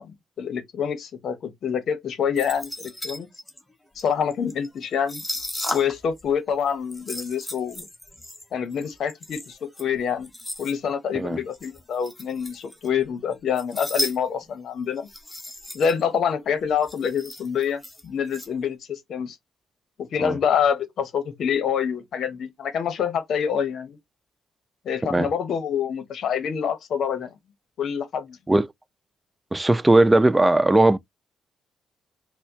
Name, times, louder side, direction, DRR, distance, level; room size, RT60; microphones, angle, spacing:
voice 1, 0.0-3.3 4.0-5.2 5.7-7.9 8.5-10.3 10.6-15.1 15.7-19.4 20.0-24.0 24.8-27.4 27.8-28.4, left 7 dB, 65° left, 0.8 m, -26 dB
sound 1, 2.4-6.2 6.5-10.7 11.5-13.0 13.3-14.2 14.4-14.5 15.0-16.0 16.4-16.5 16.6-18.5, left 1 dB, 10° left, 0.8 m, -35 dB
voice 2, 29.5-31.0, right 2 dB, 15° right, 0.3 m, -18 dB
4.3 x 2.1 x 2.7 m
cardioid pair, 90°, 0 cm